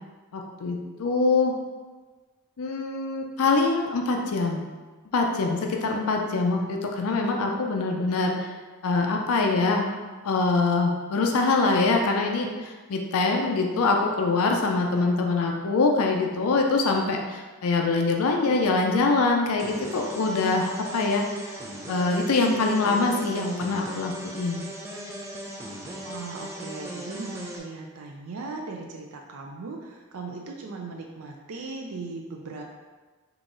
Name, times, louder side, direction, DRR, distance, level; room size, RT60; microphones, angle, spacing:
voice 1, 0.3-1.5 2.6-4.6 5.1-8.5 8.8-9.9 10.2-21.2 21.9-24.6, left 3 dB, 70° left, 2 dB, 0.5 m, -24 dB
sound 1, 19.6-27.6, right 1 dB, 15° right, 0.4 m, -38 dB
voice 2, 26.0-32.6, right 3 dB, 65° right, 1 dB, 0.4 m, -38 dB
3.8 x 2.9 x 3.8 m, 1.3 s
head